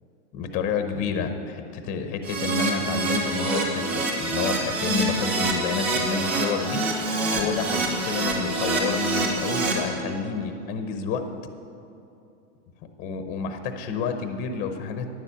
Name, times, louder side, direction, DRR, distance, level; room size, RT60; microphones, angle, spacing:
voice 1, 0.3-6.8 7.3-11.2 13.0-15.1, left 5 dB, 25° left, 7 dB, 0.7 m, -29 dB
Keyboard (musical), 2.2-9.7, right 2 dB, 65° right, 2.6 m, -26 dB
10.5 x 7.2 x 8.2 m, 2.6 s
supercardioid pair, 160°, 36 cm